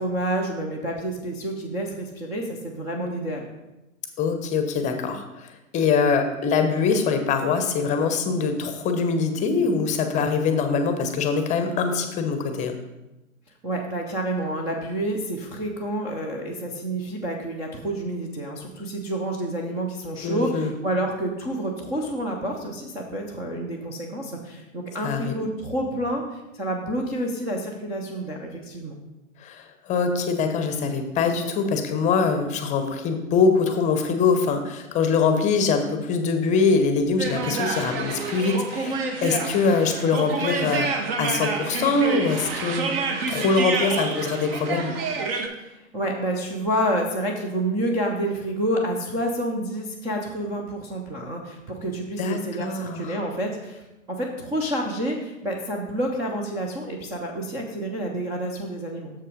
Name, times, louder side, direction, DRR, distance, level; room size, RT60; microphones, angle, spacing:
voice 1, 0.0-3.5 13.6-28.9 45.6-53.8 54.1-59.1, right 1 dB, 10° right, -1 dB, 0.4 m, -29 dB
voice 2, 4.2-12.8 20.2-20.7 25.0-25.3 29.4-40.9 41.2-43.0 43.3-45.0 52.2-53.2, left 4 dB, 20° left, 7 dB, 0.7 m, -23 dB
sound 1, 37.2-45.5, right 4 dB, 45° right, 1.2 m, -28 dB
7.1 x 5.5 x 5.0 m, 0.98 s
hypercardioid pair, 125°, 40 cm